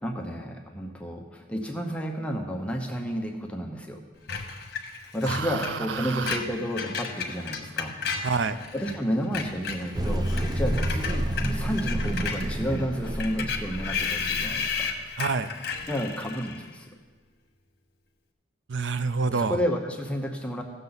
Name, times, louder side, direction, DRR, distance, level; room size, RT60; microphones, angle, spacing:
voice 1, 0.0-4.0 5.1-8.0 8.7-14.9 15.9-16.9 19.3-20.6, equal, 5° left, 1 dB, 0.8 m, -31 dB
Screech, 4.3-9.0 9.2-16.7, left 5 dB, 60° left, 1.1 m, -34 dB
voice 2, 5.2-6.4 8.2-8.6 15.2-15.5 18.7-19.6, right 4 dB, 85° right, 12 dB, 0.5 m, -28 dB
sound 1, 9.9-15.1, right 1 dB, 25° right, 0.5 m, -29 dB
16.0 x 6.8 x 4.0 m, 1.4 s
head